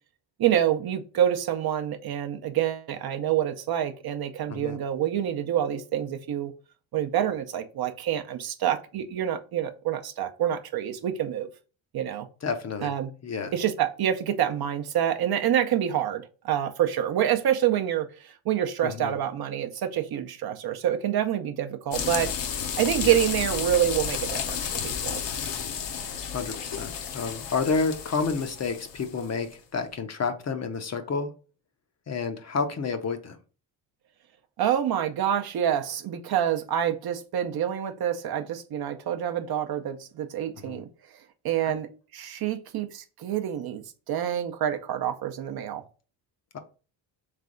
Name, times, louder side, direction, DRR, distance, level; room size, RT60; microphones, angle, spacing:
voice 1, 0.4-6.5 6.9-11.5 11.9-12.3 12.8-13.1 13.5-22.3 22.8-25.2 34.6-40.9 41.4-45.8, right 10 dB, 55° right, 0.6 m, -27 dB
voice 2, 12.4-12.9 13.2-13.5 18.8-19.1 23.1-23.2 26.3-31.3 32.1-33.4 40.6-40.8 41.6-41.7, left 4 dB, 35° left, 0.6 m, -30 dB
sound 1, 21.9-29.3, left 7 dB, 65° left, 0.8 m, -32 dB
3.3 x 3.3 x 3.7 m
cardioid pair, 90°, 46 cm